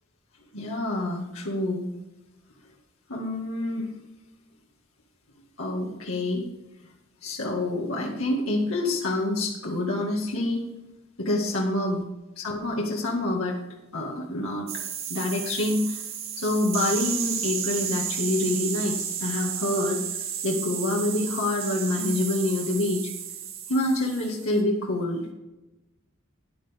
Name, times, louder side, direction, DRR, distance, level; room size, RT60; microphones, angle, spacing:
voice 1, 0.5-1.9 3.1-3.9 5.6-6.4 7.2-10.7 11.2-12.0 12.4-13.6 13.9-14.7 15.1-16.0 16.4-20.0 20.4-23.1 23.7-25.3, left 1 dB, 85° left, -2 dB, 2.0 m, -27 dB
sound 1, 14.7-24.5, right 8 dB, 75° right, 1.9 m, -33 dB
13.0 x 10.0 x 3.6 m, 1.0 s
head